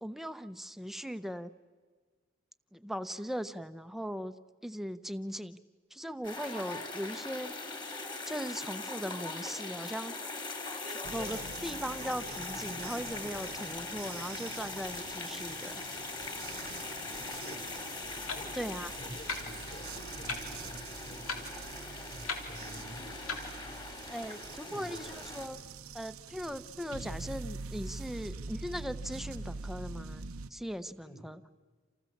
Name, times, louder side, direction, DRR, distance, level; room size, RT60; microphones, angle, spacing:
voice 1, 0.0-1.5 2.7-4.3 4.6-5.6 5.9-7.5 8.3-10.1 10.8-15.7 18.5-18.9 24.1-25.1 25.3-25.6 25.9-31.4, equal, ahead, 10 dB, 0.7 m, -39 dB
sound 1, 6.2-25.5, left 3 dB, 20° left, 2.6 m, -41 dB
sound 2, 11.0-30.5, right 4 dB, 90° right, 1.0 m, -45 dB
voice 2, 16.9-17.8 18.3-18.6 18.9-21.5 22.0-23.7 24.6-25.3 26.3-26.5 31.0-31.3, equal, 45° left, 4 dB, 4.9 m, -50 dB
Clock, 18.0-23.9, left 3 dB, 90° left, 3.6 m, -42 dB
28.5 x 28.5 x 7.3 m, 1.5 s
head